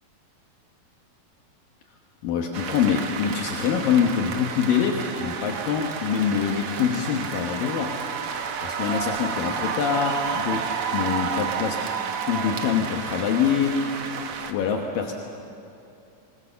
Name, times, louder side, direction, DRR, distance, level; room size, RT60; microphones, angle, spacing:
voice 1, 2.2-8.0 8.6-11.8 12.3-13.8 14.5-15.1, left 7 dB, 75° left, 1 dB, 2.9 m, -25 dB
sound 1, 2.5-14.5, right 6 dB, 60° right, 1.5 m, -31 dB
26.5 x 20.0 x 6.9 m, 2.7 s
omnidirectional pair, 4.2 m